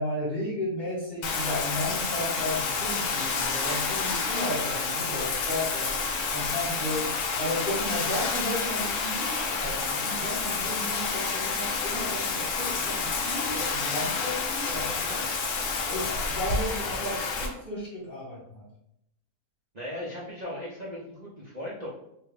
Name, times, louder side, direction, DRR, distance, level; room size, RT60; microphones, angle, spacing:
voice 1, 0.0-6.0 6.3-15.3 15.9-18.6, left 1 dB, 40° left, -8 dB, 1.3 m, -34 dB
Bathtub (filling or washing), 1.2-17.5, left 4 dB, 65° left, 0.8 m, -29 dB
voice 2, 19.7-21.9, left 1 dB, 65° right, -6 dB, 0.4 m, -37 dB
3.0 x 2.3 x 3.3 m, 0.80 s
omnidirectional pair, 1.7 m